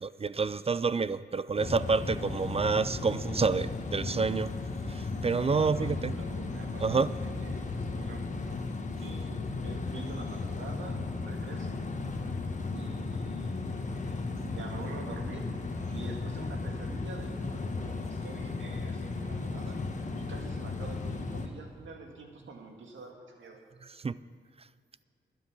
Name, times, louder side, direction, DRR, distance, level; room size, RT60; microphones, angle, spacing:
voice 1, 0.0-4.5 4.9-6.1 6.8-7.1 24.0-24.2, right 4 dB, 30° right, 16 dB, 0.4 m, -28 dB
sound 1, 1.6-21.5, left 3 dB, 40° left, 1.4 m, -35 dB
voice 2, 5.5-8.6 9.0-11.8 12.7-19.8 20.1-23.6, right 3 dB, 85° right, 2 dB, 1.9 m, -46 dB
12.0 x 9.9 x 6.1 m, 2.4 s
cardioid pair, 65°, 19 cm